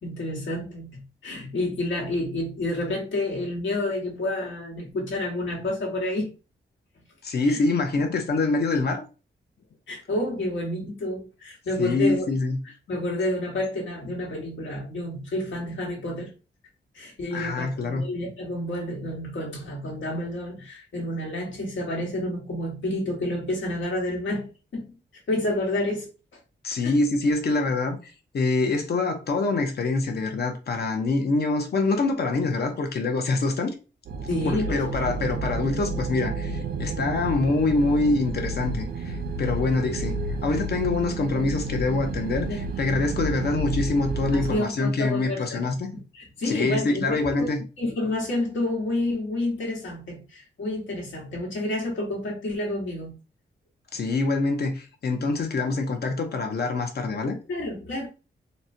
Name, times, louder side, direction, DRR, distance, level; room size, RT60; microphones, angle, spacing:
voice 1, 0.0-6.3 7.5-7.6 9.9-12.3 12.9-16.3 16.9-25.0 25.3-26.4 26.8-27.0 34.3-35.2 40.3-40.4 42.5-43.1 44.3-45.6 45.9-47.5 47.8-53.2 57.5-58.1, left 1 dB, 80° left, 1.4 m, -29 dB
voice 2, 7.2-9.0 11.8-12.6 17.3-18.0 26.6-33.7 34.4-45.9 46.5-47.6 53.9-57.4, left 3 dB, 60° left, 0.8 m, -25 dB
sound 1, 34.1-44.6, right 3 dB, 50° right, 0.4 m, -30 dB
4.1 x 2.2 x 2.6 m
wide cardioid pair, 140°, 19 cm